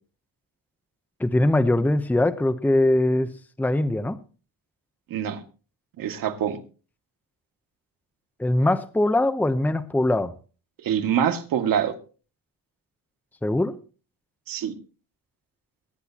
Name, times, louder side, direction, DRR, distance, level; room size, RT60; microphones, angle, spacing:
voice 1, 1.2-3.3 3.6-4.2 8.4-10.3 13.4-13.8, left 1 dB, 5° left, 11 dB, 0.8 m, -21 dB
voice 2, 6.0-6.6 10.8-11.9 14.5-14.8, right 9 dB, 70° right, 7 dB, 2.2 m, -25 dB
23.0 x 10.5 x 2.9 m, 0.36 s
cardioid pair, 135°, 35 cm